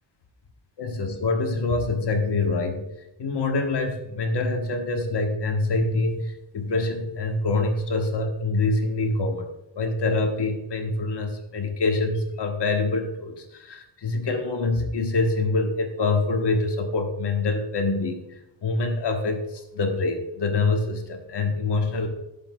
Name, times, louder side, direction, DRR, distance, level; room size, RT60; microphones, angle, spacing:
voice 1, 0.8-2.9 3.2-9.4 9.7-22.1, left 3 dB, 55° left, 4 dB, 1.3 m, -25 dB
11.5 x 7.2 x 2.3 m, 0.88 s
cardioid pair, 105°, 48 cm